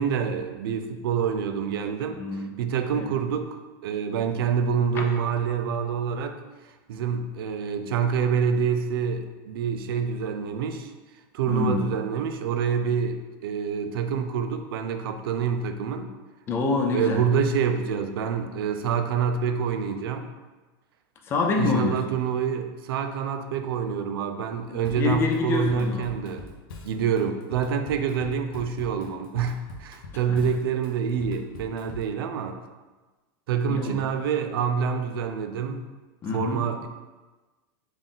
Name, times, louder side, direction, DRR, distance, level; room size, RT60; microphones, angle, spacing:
voice 1, 0.0-2.2 2.6-6.4 6.9-10.9 11.3-16.1 16.9-20.2 21.6-26.4 26.8-32.6 33.5-35.8 36.3-36.9, right 6 dB, 80° right, 7 dB, 0.4 m, -27 dB
voice 2, 2.1-2.5 3.0-3.1 4.9-5.0 11.5-11.9 16.5-17.2 21.3-22.2 24.7-26.1 30.3-30.4 33.6-34.1 36.2-36.7, left 4 dB, 20° left, 2 dB, 0.4 m, -27 dB
Drum kit / Drum, 24.8-32.2, left 3 dB, 80° left, 0.6 m, -44 dB
3.8 x 2.5 x 3.6 m, 1.2 s
supercardioid pair, 160°, 12 cm